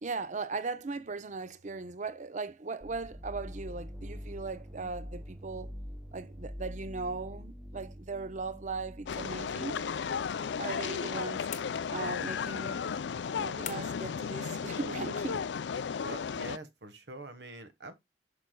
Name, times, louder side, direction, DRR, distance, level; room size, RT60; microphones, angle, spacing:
voice 1, 0.0-5.7 6.1-9.8 10.6-11.5 11.9-12.9 13.3-15.4, right 4 dB, 45° right, 0.6 m, -38 dB
sound 1, 2.8-10.5, equal, 5° right, 0.5 m, -45 dB
sound 2, 9.1-16.6, left 6 dB, 85° left, 0.4 m, -34 dB
sound 3, 11.5-12.2 13.6-14.1, left 9 dB, 45° left, 1.0 m, -44 dB
voice 2, 12.0-12.4 16.0-17.9, right 2 dB, 70° right, 1.4 m, -45 dB
8.6 x 6.2 x 2.2 m
head